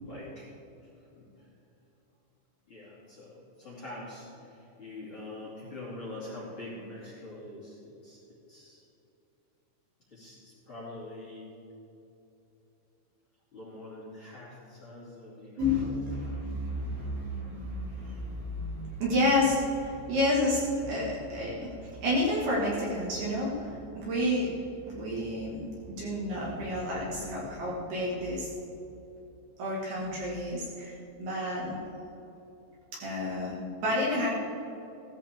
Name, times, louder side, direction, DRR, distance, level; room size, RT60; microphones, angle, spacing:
voice 1, 0.0-0.5 0.8-1.5 2.7-8.8 10.1-11.5 13.5-16.0, left 2 dB, 30° left, -7 dB, 2.9 m, -45 dB
voice 2, 15.6-24.5 24.9-28.5 29.6-31.8 32.9-34.3, left 1 dB, 60° right, -5 dB, 3.8 m, -30 dB
17.0 x 14.0 x 3.7 m, 2.9 s
omnidirectional pair, 5.6 m